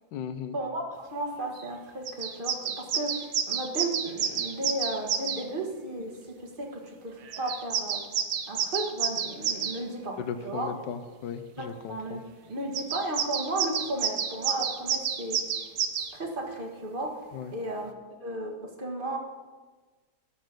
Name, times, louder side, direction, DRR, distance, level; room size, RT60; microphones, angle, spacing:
voice 1, 0.1-0.6 10.2-12.2 17.3-17.5, left 7 dB, 80° left, 8 dB, 1.3 m, -36 dB
voice 2, 1.1-8.0 8.5-10.2 10.4-10.7 11.6-12.2 12.5-15.4 16.1-17.1 17.5-17.9 18.2-19.2, right 1 dB, 30° right, 1 dB, 1.6 m, -34 dB
sound 1, 1.6-1.7 2.0-5.4 7.3-9.8 12.7-16.1, right 7 dB, 65° right, 1.2 m, -30 dB
13.0 x 6.6 x 6.1 m, 1.3 s
omnidirectional pair, 1.9 m